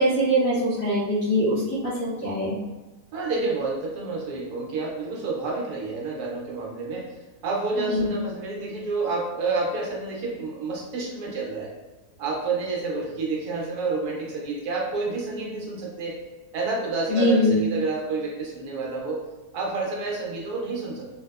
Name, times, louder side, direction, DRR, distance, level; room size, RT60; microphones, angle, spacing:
voice 1, 0.0-2.5 7.8-8.1 17.1-17.6, equal, 75° left, -11 dB, 1.4 m, -22 dB
voice 2, 3.1-11.7 12.2-16.2 16.5-19.2 19.5-21.1, right 3 dB, 75° right, -3 dB, 1.2 m, -29 dB
3.2 x 2.8 x 2.3 m, 1.2 s
omnidirectional pair, 1.7 m